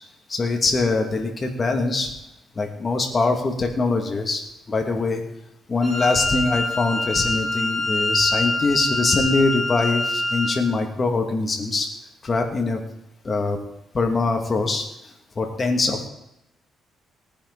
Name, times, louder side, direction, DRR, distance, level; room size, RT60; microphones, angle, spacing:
voice 1, 0.3-2.1 2.6-4.4 4.7-5.2 5.7-11.9 12.2-12.8 13.2-13.6 13.9-14.9 15.4-16.1, left 3 dB, 35° left, 3 dB, 2.7 m, -23 dB
Wind instrument woodwind instrument, 5.8-10.7, left 2 dB, 10° left, 5.4 m, -25 dB
18.5 x 10.0 x 4.3 m, 0.86 s
cardioid pair, 90°, 0 cm